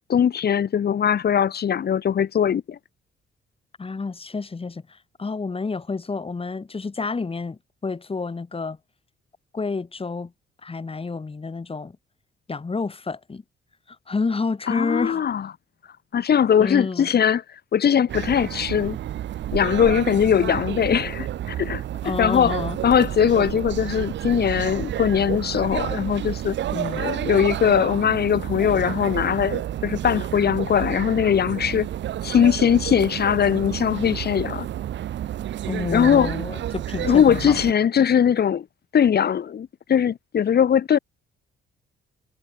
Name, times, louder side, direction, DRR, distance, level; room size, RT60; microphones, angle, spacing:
voice 1, 0.1-2.8 14.7-15.5 16.1-17.4 17.7-19.0 19.5-26.6 27.0-31.9 32.2-34.7 35.9-36.3 37.0-38.6 38.9-41.0, left 8 dB, 55° left, 2.9 m, -20 dB
voice 2, 3.8-8.8 9.5-10.3 10.6-12.0 12.5-13.4 13.9-15.2 16.6-17.1 22.0-22.8 26.7-27.1 35.7-37.6, left 4 dB, 30° left, 6.9 m, -29 dB
sound 1, 18.1-37.7, right 12 dB, 65° right, 1.0 m, -30 dB
cardioid pair, 90°, 20 cm